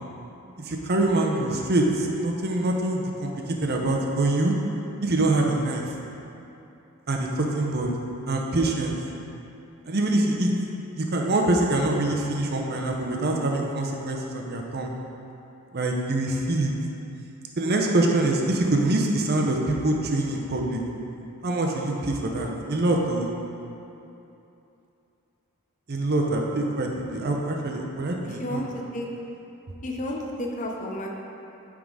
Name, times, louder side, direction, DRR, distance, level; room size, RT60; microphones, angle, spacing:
voice 1, 0.6-3.3 3.6-4.5 5.0-5.8 7.1-7.9 8.3-8.9 9.9-10.5 11.0-14.9 15.7-16.7 17.6-20.8 21.4-23.3 25.9-28.6, right 2 dB, 45° right, 1 dB, 0.7 m, -24 dB
voice 2, 28.2-29.1 29.8-31.1, left 1 dB, 35° left, 0 dB, 0.6 m, -32 dB
9.1 x 3.7 x 4.8 m, 2.8 s
head